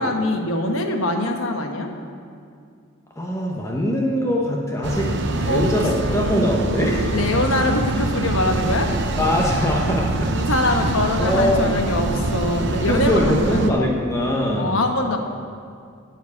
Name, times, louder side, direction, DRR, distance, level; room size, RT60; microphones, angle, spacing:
voice 1, 0.0-1.9 5.5-5.6 6.1-8.9 10.3-13.8 14.5-15.2, left 1 dB, 65° left, 4 dB, 1.2 m, -23 dB
voice 2, 3.2-5.1 5.4-7.0 9.2-10.7 11.2-11.8 12.9-14.7, left 1 dB, 15° left, -1 dB, 1.0 m, -22 dB
sound 1, 4.8-13.7, right 2 dB, 50° right, 0.8 m, -24 dB
9.7 x 7.3 x 8.4 m, 2.3 s
head